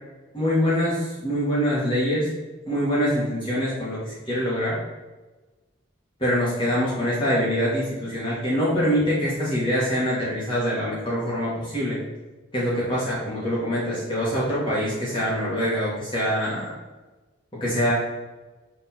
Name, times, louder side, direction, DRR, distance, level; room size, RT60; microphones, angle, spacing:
voice 1, 0.3-2.3 2.7-4.8 6.2-12.0 12.5-16.7 17.6-17.9, equal, 25° left, -8 dB, 1.6 m, -24 dB
6.4 x 3.6 x 4.2 m, 1.2 s
head